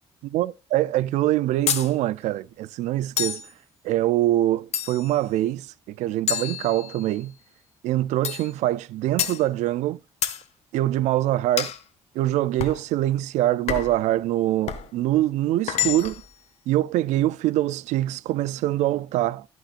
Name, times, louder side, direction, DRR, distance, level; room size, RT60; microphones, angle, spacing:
voice 1, 0.3-3.4 3.8-7.3 7.8-10.0 10.7-11.7 12.1-16.2 16.7-19.5, right 14 dB, 90° right, 0.4 m, -24 dB
sound 1, 1.7-1.9 3.2-3.5 4.7-5.2 6.3-7.2 8.2-8.5 9.2-9.4 10.2-10.4 11.6-11.8 12.6-12.8 13.7-14.0 14.7-14.9 15.7-16.3, left 10 dB, 70° left, 1.2 m, -28 dB
16.5 x 6.0 x 2.5 m
cardioid pair, 110°, 12 cm